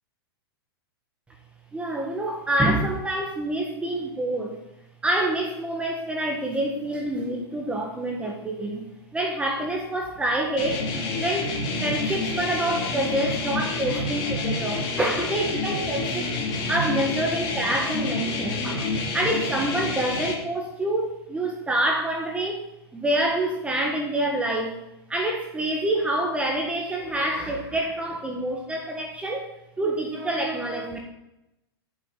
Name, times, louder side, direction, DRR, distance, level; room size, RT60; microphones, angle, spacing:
voice 1, 1.7-4.6 5.0-8.9 9.1-10.9 11.2-16.3 16.7-24.8 25.1-29.5 29.8-31.0, right 1 dB, 10° right, 0 dB, 1.4 m, -27 dB
sound 1, 10.6-20.3, left 3 dB, 40° left, 2.4 m, -28 dB
14.5 x 7.2 x 3.9 m, 0.89 s
hypercardioid pair, 135°, 13 cm